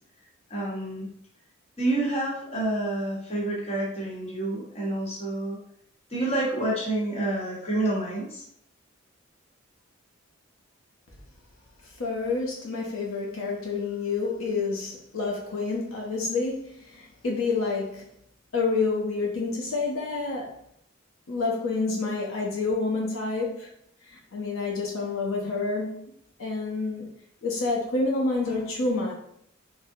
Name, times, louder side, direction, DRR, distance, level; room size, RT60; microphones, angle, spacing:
voice 1, 0.5-1.1 1.8-5.6 6.1-8.4, right 2 dB, 30° left, -5 dB, 0.9 m, -28 dB
voice 2, 12.0-18.0 18.5-20.6 21.3-23.7 24.1-26.0 26.4-27.1 27.4-29.1, left 3 dB, 75° left, -2 dB, 0.6 m, -28 dB
3.5 x 2.0 x 2.6 m, 0.70 s
head